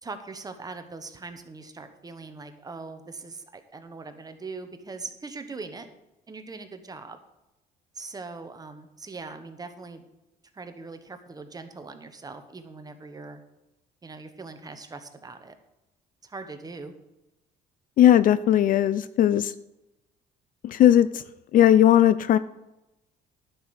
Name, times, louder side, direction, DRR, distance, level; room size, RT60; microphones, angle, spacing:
voice 1, 0.0-5.9 6.3-7.2 7.9-10.0 10.5-13.4 14.0-15.5 16.2-16.9, right 3 dB, 20° right, 8 dB, 1.1 m, -41 dB
voice 2, 18.0-19.5 20.6-21.2 21.5-22.4, left 11 dB, 55° left, 16 dB, 0.4 m, -18 dB
11.0 x 6.1 x 6.5 m, 0.98 s
cardioid pair, 110°, 17 cm